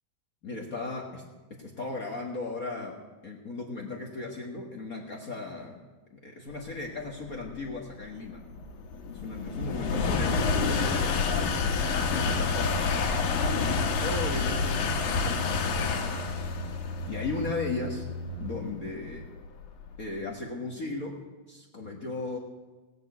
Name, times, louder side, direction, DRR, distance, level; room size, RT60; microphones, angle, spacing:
voice 1, 0.4-1.2 1.5-5.8 6.1-8.5 9.1-12.9 13.5-16.3 17.0-18.0 18.4-19.3 20.0-21.2 21.5-22.4, left 3 dB, 65° left, -1 dB, 0.8 m, -36 dB
sound 1, 6.9-20.2, left 4 dB, 80° left, 3.2 m, -29 dB
sound 2, 11.8-18.5, left 1 dB, 65° right, 6.0 m, -38 dB
17.0 x 9.3 x 8.0 m, 1.2 s
omnidirectional pair, 4.0 m